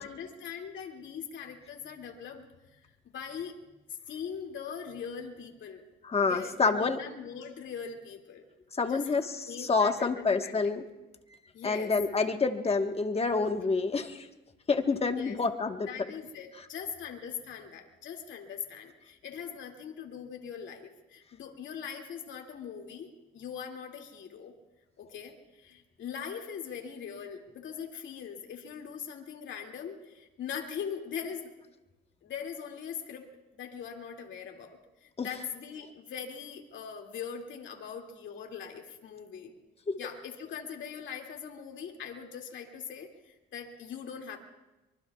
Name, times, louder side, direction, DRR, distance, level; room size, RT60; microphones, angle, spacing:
voice 1, 0.0-2.4 2.7-3.6 4.1-5.8 6.1-8.4 8.9-9.1 9.5-10.8 11.5-11.9 15.2-15.4 15.9-24.5 25.0-31.5 32.2-39.5 40.0-44.4, left 7 dB, 70° left, 2 dB, 2.4 m, -41 dB
voice 2, 6.1-7.0 8.8-10.8 11.6-14.3 14.7-15.9 35.2-35.3, left 4 dB, 30° left, 5 dB, 1.3 m, -28 dB
24.0 x 24.0 x 2.4 m, 1.0 s
cardioid pair, 90°, 20 cm